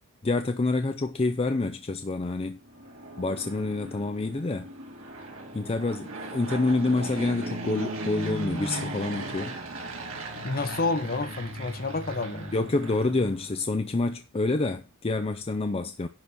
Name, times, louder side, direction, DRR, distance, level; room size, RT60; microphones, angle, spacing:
voice 1, 0.2-2.6 3.2-4.7 5.5-9.5 12.5-16.1, left 2 dB, 30° left, 0.5 m, -27 dB
Fixed-wing aircraft airplane, 2.6-13.7, right 1 dB, 75° right, 2.5 m, -37 dB
voice 2, 10.4-12.5, left 3 dB, 45° left, 0.9 m, -29 dB
10.5 x 4.2 x 6.2 m
head